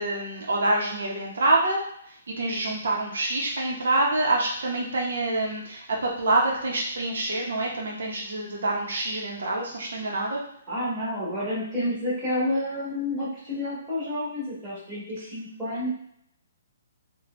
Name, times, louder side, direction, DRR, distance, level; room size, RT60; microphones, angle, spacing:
voice 1, 0.0-10.4, right 2 dB, 70° right, -2 dB, 0.7 m, -26 dB
voice 2, 10.7-15.9, left 1 dB, ahead, -13 dB, 1.2 m, -29 dB
3.1 x 2.1 x 3.0 m, 0.70 s
hypercardioid pair, 175°, 0 cm